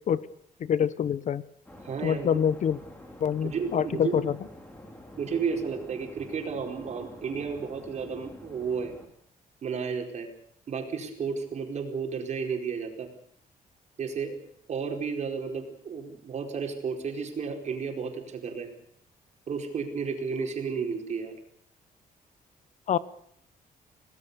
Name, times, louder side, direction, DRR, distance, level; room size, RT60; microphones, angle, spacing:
voice 1, 0.6-1.4 2.0-2.8 3.2-4.3 22.9-23.0, left 8 dB, 50° left, 17 dB, 0.9 m, -26 dB
sound 1, 1.7-9.1, left 1 dB, 10° left, 4.4 m, -48 dB
voice 2, 1.8-2.4 3.4-4.2 5.2-8.9 9.6-10.3 10.7-13.1 14.0-14.4 14.7-18.7 19.5-21.3, right 5 dB, 50° right, 3 dB, 4.7 m, -32 dB
27.5 x 18.5 x 6.9 m, 0.66 s
cardioid pair, 150°, 15 cm